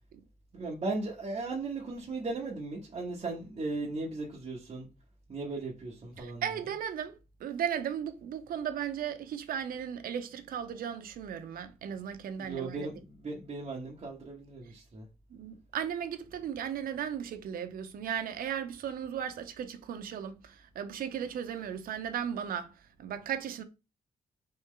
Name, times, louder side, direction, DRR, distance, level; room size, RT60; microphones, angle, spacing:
voice 1, 0.5-4.9 5.3-6.4 12.4-15.1, right 3 dB, 40° right, 1.1 m, -37 dB
voice 2, 6.2-12.9 15.3-23.6, right 8 dB, 85° right, 0.7 m, -36 dB
4.4 x 3.2 x 3.7 m
wide cardioid pair, 135°, 14 cm